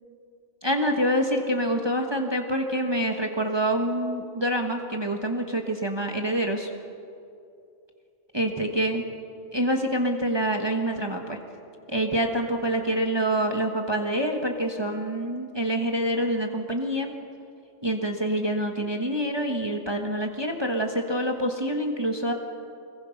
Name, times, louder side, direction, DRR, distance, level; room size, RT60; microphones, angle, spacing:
voice 1, 0.6-6.7 8.3-9.0 9.5-11.4 11.9-17.1 17.8-22.3, right 1 dB, 20° right, 3 dB, 1.3 m, -26 dB
25.0 x 22.0 x 5.8 m, 2.6 s
omnidirectional pair, 1.3 m